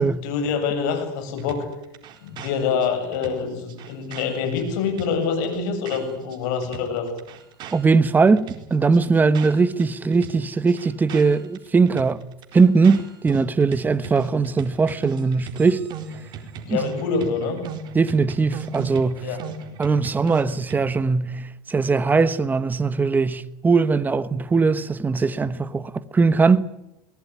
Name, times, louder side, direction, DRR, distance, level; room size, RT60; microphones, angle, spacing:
voice 1, 0.0-1.7 2.2-7.1 16.6-17.6 19.2-19.4, left 5 dB, 70° left, 7.8 m, -26 dB
sound 1, 1.4-6.4 6.6-9.9 10.1-21.1, right 6 dB, 45° right, 4.3 m, -38 dB
voice 2, 7.7-12.2 12.5-15.9 16.7-16.8 17.9-19.3 19.8-26.7, right 4 dB, 15° right, 1.3 m, -20 dB
23.0 x 19.5 x 9.7 m
supercardioid pair, 110°, 11 cm